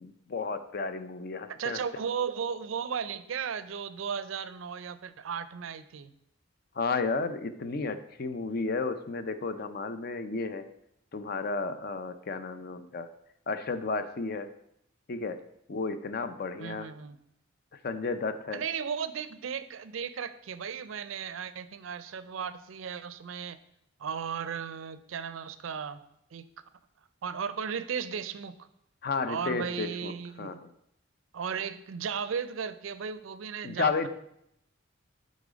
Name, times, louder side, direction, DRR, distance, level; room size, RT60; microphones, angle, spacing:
voice 1, 0.0-1.8 6.8-10.6 11.1-13.1 13.5-14.5 15.1-15.4 15.7-16.9 17.8-18.6 29.0-30.1 30.4-30.7 33.6-34.1, left 4 dB, 50° left, 11 dB, 0.5 m, -32 dB
voice 2, 1.5-6.1 16.6-17.2 18.5-23.6 24.0-26.0 26.3-26.5 27.2-28.5 29.3-30.6 31.3-34.1, right 7 dB, 85° right, 14 dB, 0.5 m, -35 dB
8.4 x 4.1 x 5.0 m, 0.77 s
head